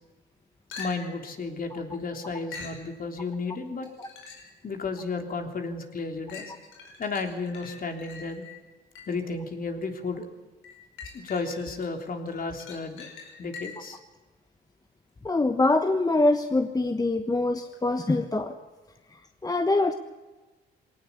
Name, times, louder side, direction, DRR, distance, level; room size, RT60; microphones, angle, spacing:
sound 1, 0.7-1.3 2.5-2.8 3.8-4.6 5.1-5.2 6.3-9.3 10.6-11.9 12.3-14.0 17.7-17.8, left 4 dB, 85° left, 5.3 m, -44 dB
voice 1, 0.8-3.9 4.6-6.5 7.0-8.4 9.1-10.2 11.1-13.1 13.4-14.0, left 4 dB, 45° left, 5 dB, 3.5 m, -33 dB
voice 2, 15.2-18.5 19.4-19.9, left 2 dB, 20° left, 7 dB, 1.2 m, -24 dB
21.5 x 18.0 x 8.5 m, 1.2 s
cardioid pair, 90°, 20 cm